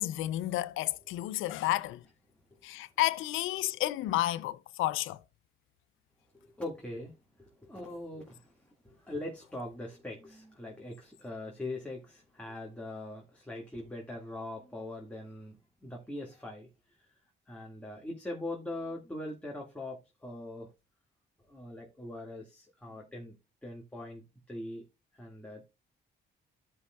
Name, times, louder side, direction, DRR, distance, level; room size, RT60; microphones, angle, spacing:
voice 1, 0.0-2.0 2.6-5.2, left 15 dB, 90° left, 0.5 m, -31 dB
voice 2, 6.3-16.7 17.0-17.1 17.5-20.7 21.4-23.4 23.6-24.8 25.1-25.6, left 1 dB, 5° left, 1.9 m, -42 dB
14.0 x 5.5 x 2.3 m
cardioid pair, 90°, 20 cm